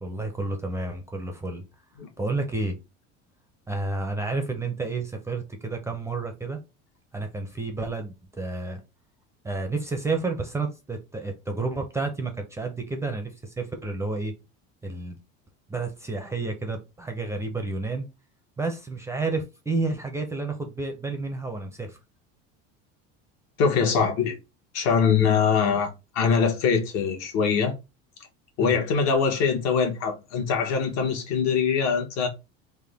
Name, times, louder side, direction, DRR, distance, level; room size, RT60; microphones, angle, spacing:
voice 1, 0.0-1.6 2.2-2.8 3.7-6.6 7.1-8.8 9.4-14.3 14.8-15.2 15.7-18.0 18.6-22.0 28.6-28.8, right 3 dB, 10° right, 0.5 m, -30 dB
voice 2, 23.6-24.3 24.7-25.9 26.1-27.7 28.6-32.3, left 6 dB, 65° left, 1.2 m, -23 dB
3.5 x 2.1 x 3.4 m
cardioid pair, 135°, 29 cm